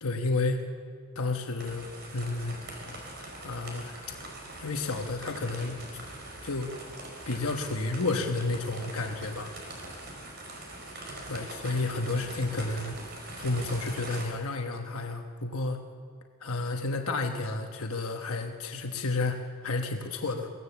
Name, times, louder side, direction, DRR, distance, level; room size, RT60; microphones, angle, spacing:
voice 1, 0.0-0.7 1.1-1.9 2.1-2.6 3.4-3.9 4.6-5.8 6.4-6.7 7.3-9.5 11.3-13.0 13.4-15.8 16.4-20.5, left 3 dB, 75° left, 4 dB, 1.1 m, -31 dB
sound 1, 1.6-14.3, right 1 dB, 45° right, 4.5 m, -42 dB
23.5 x 16.5 x 7.0 m, 2.3 s
head